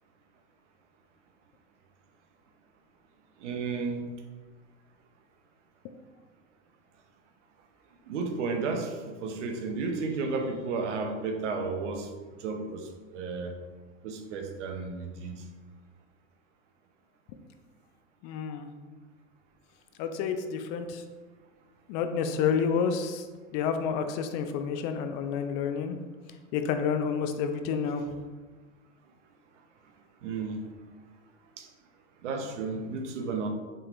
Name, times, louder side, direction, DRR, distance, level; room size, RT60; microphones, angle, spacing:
voice 1, 3.4-4.1 8.1-12.1 12.4-13.6 14.0-15.5 30.2-30.7 31.6-31.7 32.2-33.5, right 4 dB, 75° right, 4 dB, 0.8 m, -33 dB
voice 2, 18.2-18.7 20.0-21.0 21.9-23.3 23.5-26.0 26.5-28.1, left 6 dB, 45° left, 8 dB, 0.5 m, -29 dB
5.6 x 3.4 x 2.5 m, 1.3 s
hypercardioid pair, 105°, 36 cm